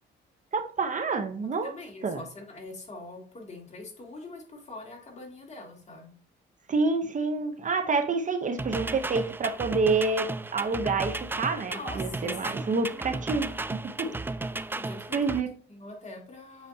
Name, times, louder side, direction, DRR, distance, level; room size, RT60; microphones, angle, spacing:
voice 1, 0.5-1.7 2.0-2.2 6.7-14.1 15.1-15.5, right 4 dB, 40° right, 7 dB, 0.8 m, -28 dB
voice 2, 1.6-6.1 11.7-13.1 13.5-13.7 14.0-14.2 14.7-15.4 15.7-16.7, left 2 dB, 35° left, 0 dB, 2.5 m, -44 dB
sound 1, 8.6-15.4, right 2 dB, 10° right, 0.3 m, -34 dB
7.9 x 5.9 x 2.8 m, 0.43 s
cardioid pair, 90°, 20 cm